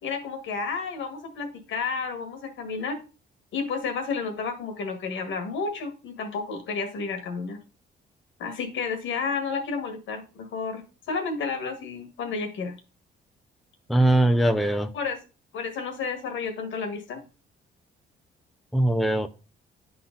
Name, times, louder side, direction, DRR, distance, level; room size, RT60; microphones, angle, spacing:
voice 1, 0.0-3.0 3.5-7.6 8.4-10.8 11.1-12.8 14.9-15.2 15.5-17.2, left 5 dB, 75° left, 6 dB, 1.7 m, -31 dB
voice 2, 13.9-14.9 18.7-19.3, right 1 dB, ahead, 8 dB, 0.5 m, -21 dB
10.0 x 3.9 x 3.8 m, 0.32 s
cardioid pair, 90°, 20 cm